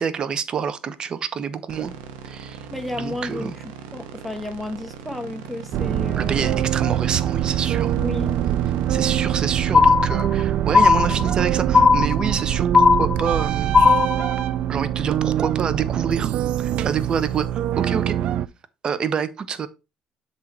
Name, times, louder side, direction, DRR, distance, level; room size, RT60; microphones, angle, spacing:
voice 1, 0.0-1.9 2.2-2.7 3.0-3.5 6.2-8.0 8.9-12.7 13.0-13.7 14.7-18.2 18.8-19.7, right 6 dB, 45° right, 0.9 m, -27 dB
sound 1, 1.7-10.9, right 6 dB, 90° right, 1.0 m, -40 dB
voice 2, 2.7-6.6 8.0-8.4, left 2 dB, ahead, 1.3 m, -32 dB
sound 2, 5.7-18.5, right 11 dB, 65° right, 0.4 m, -23 dB
sound 3, 9.7-10.4 10.7-11.4 11.7-12.4 12.7-13.4 13.7-14.4, left 5 dB, 25° left, 0.4 m, -16 dB
7.2 x 4.1 x 4.3 m
cardioid pair, 90°, 2 cm